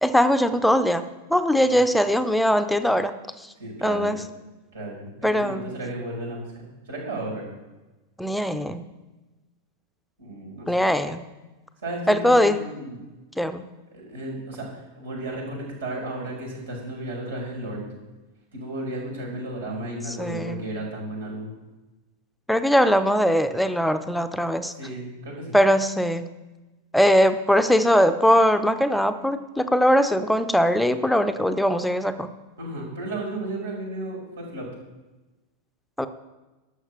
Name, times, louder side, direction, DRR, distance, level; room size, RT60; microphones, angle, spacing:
voice 1, 0.0-3.1 3.8-4.2 5.2-5.7 8.2-8.9 10.7-11.2 12.1-12.6 13.4-13.7 20.1-20.6 22.5-24.7 25.5-26.3 26.9-32.3 36.0-36.1, equal, ahead, 11 dB, 0.7 m, -21 dB
voice 2, 3.6-4.2 4.7-7.4 10.2-10.7 11.8-13.0 13.9-17.8 18.5-21.5 24.7-25.6 32.6-34.7, right 1 dB, 65° right, -2 dB, 4.9 m, -34 dB
12.0 x 6.4 x 7.1 m, 1.1 s
figure-of-eight pair, 90°, 0 cm